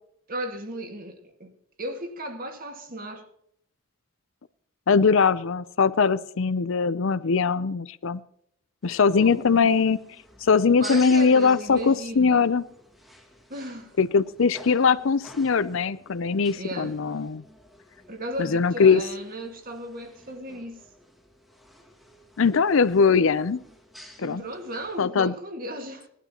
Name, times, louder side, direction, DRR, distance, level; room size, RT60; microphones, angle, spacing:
voice 1, 0.3-1.5 1.8-3.3 8.9-9.7 10.8-12.5 13.5-13.9 16.5-17.0 18.1-20.8 24.2-26.1, right 1 dB, 40° right, 1.9 m, -36 dB
voice 2, 4.9-8.2 8.8-10.0 10.5-12.6 14.0-17.4 18.4-19.0 22.4-23.6 24.2-24.4 25.0-25.3, left 5 dB, 60° left, 0.5 m, -21 dB
sound 1, 8.8-25.0, equal, ahead, 1.8 m, -49 dB
18.5 x 12.0 x 2.9 m
head